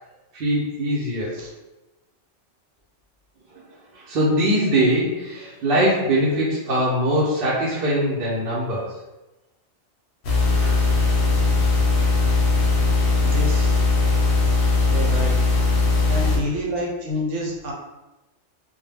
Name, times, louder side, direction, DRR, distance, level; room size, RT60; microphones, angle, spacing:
voice 1, 0.3-1.3 3.5-3.6 3.9-8.9 10.6-10.9, right 1 dB, 55° right, -7 dB, 0.7 m, -22 dB
sound 1, 10.2-16.4, left 3 dB, 60° left, 0.7 m, -19 dB
voice 2, 13.2-13.8 14.9-15.4 16.1-17.7, left 1 dB, 85° right, -1 dB, 1.0 m, -28 dB
2.2 x 2.1 x 3.2 m, 1.0 s
omnidirectional pair, 1.3 m